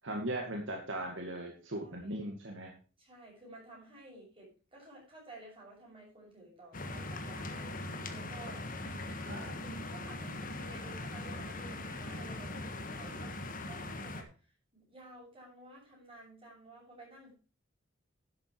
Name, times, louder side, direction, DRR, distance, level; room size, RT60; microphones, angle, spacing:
voice 1, 0.0-2.7 9.2-9.5, right 1 dB, 65° right, 1 dB, 2.0 m, -38 dB
voice 2, 1.8-2.2 3.0-7.8 8.1-8.7 9.4-17.3, right 2 dB, 30° right, -3 dB, 6.7 m, -53 dB
sound 1, 6.7-14.2, left 2 dB, 45° left, 1.5 m, -41 dB
11.5 x 8.0 x 4.7 m, 0.36 s
head